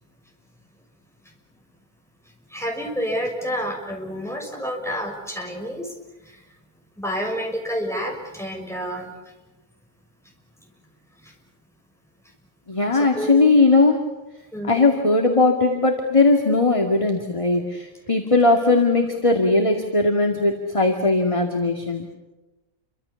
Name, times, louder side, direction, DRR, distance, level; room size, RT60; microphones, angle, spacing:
voice 1, 2.5-5.9 6.2-6.5 7.0-9.3 10.6-10.7 11.1-11.3 12.9-13.3 14.5-14.8, equal, ahead, 1 dB, 6.3 m, -29 dB
voice 2, 12.7-14.0 14.7-22.1, left 3 dB, 20° left, 3 dB, 2.3 m, -19 dB
29.5 x 24.5 x 7.1 m, 1.1 s
omnidirectional pair, 1.6 m